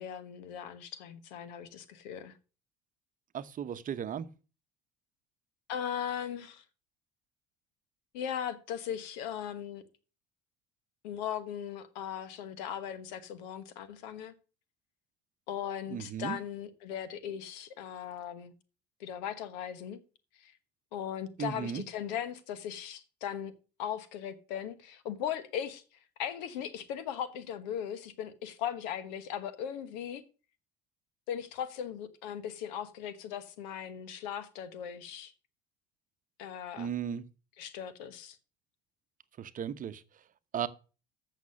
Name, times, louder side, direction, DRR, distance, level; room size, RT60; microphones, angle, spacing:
voice 1, 0.0-2.3 5.7-6.6 8.1-9.8 11.0-14.3 15.5-18.5 19.0-20.0 20.4-20.5 20.9-23.5 23.8-25.8 26.2-30.2 31.3-35.3 36.4-36.9 37.6-38.4, left 9 dB, 85° left, 1.2 m, -38 dB
voice 2, 3.3-4.3 15.9-16.4 21.4-21.8 36.8-37.2 39.4-40.0 40.5-40.7, right 8 dB, 40° right, 0.9 m, -35 dB
8.3 x 6.5 x 6.4 m
supercardioid pair, 90°, 21 cm